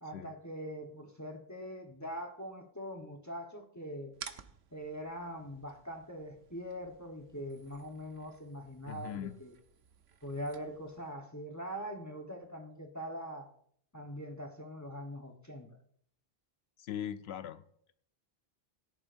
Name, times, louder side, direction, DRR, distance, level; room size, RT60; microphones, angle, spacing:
voice 1, 0.0-4.2 4.7-9.5 10.2-13.5 13.9-15.7, equal, 15° left, 2 dB, 1.1 m, -42 dB
sound 1, 4.1-11.1, right 7 dB, 90° right, 1.1 m, -54 dB
voice 2, 8.9-9.4 16.8-17.6, left 9 dB, 85° left, 12 dB, 0.9 m, -40 dB
17.5 x 11.0 x 2.6 m, 0.64 s
omnidirectional pair, 1.0 m